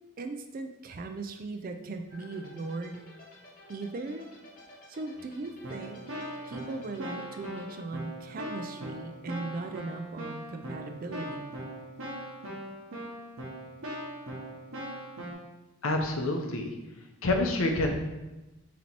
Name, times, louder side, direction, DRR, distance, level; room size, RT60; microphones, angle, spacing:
voice 1, 0.2-3.0 3.7-4.2 4.9-6.0 6.5-11.5, right 3 dB, 40° right, 6 dB, 0.3 m, -38 dB
sound 1, 2.1-7.7, left 2 dB, 40° left, 0.9 m, -52 dB
Keyboard (musical), 5.1-5.3 5.6-15.3, right 1 dB, 70° right, 1.1 m, -40 dB
voice 2, 15.8-16.7 17.2-17.9, left 2 dB, 80° left, 3 dB, 0.6 m, -27 dB
4.0 x 2.9 x 4.3 m, 1.1 s
head